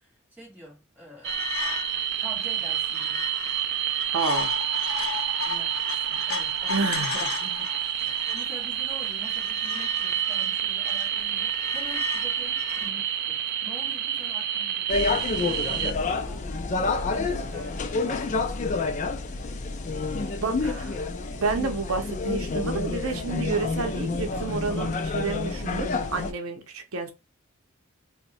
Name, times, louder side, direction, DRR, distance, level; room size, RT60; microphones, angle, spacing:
voice 1, 0.0-1.4 2.2-3.3 5.4-18.8, equal, 5° right, 1.4 m, -46 dB
sound 1, 1.2-12.9, left 6 dB, 75° left, 0.7 m, -36 dB
sound 2, 1.2-15.9, right 10 dB, 50° right, 0.3 m, -29 dB
voice 2, 4.1-4.5 6.7-7.3 8.1-8.3 20.4-21.0 21.3-27.1, right 4 dB, 85° right, 0.6 m, -30 dB
sound 3, 14.9-26.3, left 3 dB, 35° left, 0.3 m, -28 dB
2.7 x 2.1 x 4.0 m
head